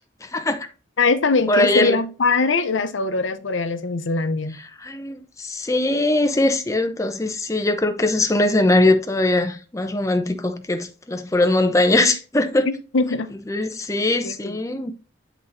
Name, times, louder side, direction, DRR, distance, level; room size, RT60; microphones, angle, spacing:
voice 1, 0.2-0.7 1.5-2.0 4.8-12.7 13.5-14.9, left 2 dB, 15° left, 0.6 m, -21 dB
voice 2, 1.0-4.6 12.7-13.3 14.2-14.6, left 4 dB, 80° left, 0.7 m, -22 dB
9.8 x 4.0 x 2.6 m
head